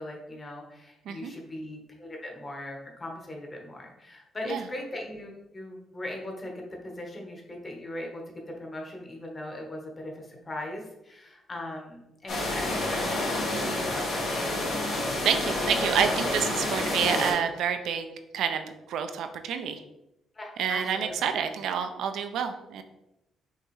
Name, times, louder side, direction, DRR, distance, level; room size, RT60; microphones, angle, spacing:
voice 1, 0.0-14.4 20.3-21.3, left 1 dB, 30° left, 0 dB, 1.2 m, -39 dB
sound 1, 12.3-17.3, left 1 dB, 75° left, 1.7 m, -29 dB
voice 2, 15.2-19.8 20.6-22.8, right 7 dB, 80° right, 8 dB, 0.5 m, -28 dB
5.6 x 3.0 x 3.1 m, 0.90 s
cardioid pair, 90°, 0 cm